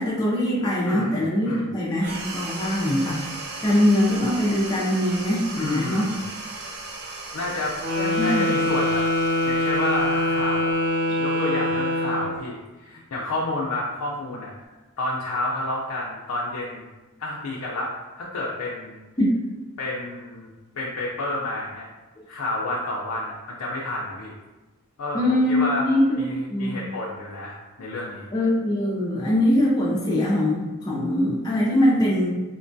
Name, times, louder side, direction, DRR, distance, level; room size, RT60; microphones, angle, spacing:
voice 1, 0.0-3.2 3.6-6.1 8.2-8.4 19.2-19.3 25.1-26.2 26.5-26.8 28.3-32.3, left 1 dB, 15° left, -6 dB, 0.4 m, -22 dB
voice 2, 0.8-1.2 1.4-1.7 5.6-6.2 7.3-9.1 9.5-10.7 11.2-14.5 15.0-16.8 17.2-19.0 19.8-20.5 20.7-21.9 22.3-24.3 25.0-25.2 25.5-25.9 26.2-28.3, left 2 dB, 80° left, -4 dB, 0.4 m, -30 dB
sound 1, 2.0-10.9, right 3 dB, 45° right, 0.4 m, -37 dB
Wind instrument woodwind instrument, 7.7-12.4, left 1 dB, 85° right, 1.3 m, -23 dB
3.7 x 2.2 x 2.6 m, 1.2 s
head